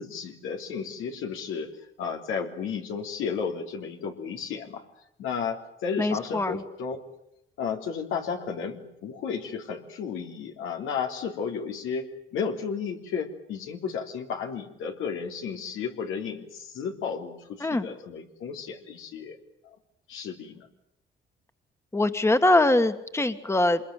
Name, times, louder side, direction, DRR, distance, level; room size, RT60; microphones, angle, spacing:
voice 1, 0.0-1.7 2.0-4.8 5.2-7.0 7.6-19.4 20.1-20.7, left 6 dB, 85° left, 3 dB, 3.5 m, -33 dB
voice 2, 6.0-6.5 17.6-17.9 21.9-23.8, left 2 dB, 15° left, 9 dB, 1.8 m, -22 dB
26.0 x 21.5 x 9.3 m, 0.78 s
cardioid pair, 90°, 20 cm